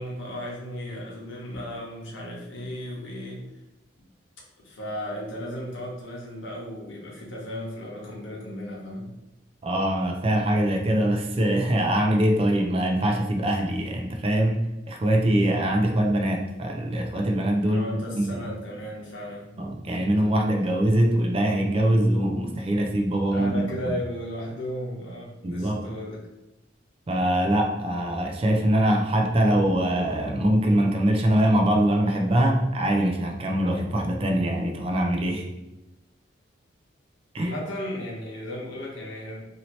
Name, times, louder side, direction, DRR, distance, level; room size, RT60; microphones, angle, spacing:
voice 1, 0.0-3.5 4.6-9.1 17.6-19.5 23.3-26.2 37.4-39.5, equal, 80° left, -3 dB, 1.0 m, -35 dB
voice 2, 9.6-14.6 14.9-17.8 18.2-18.4 19.6-23.6 25.4-25.9 27.1-35.5 37.3-37.5, right 1 dB, 30° right, 2 dB, 0.4 m, -23 dB
2.8 x 2.7 x 3.0 m, 0.97 s
head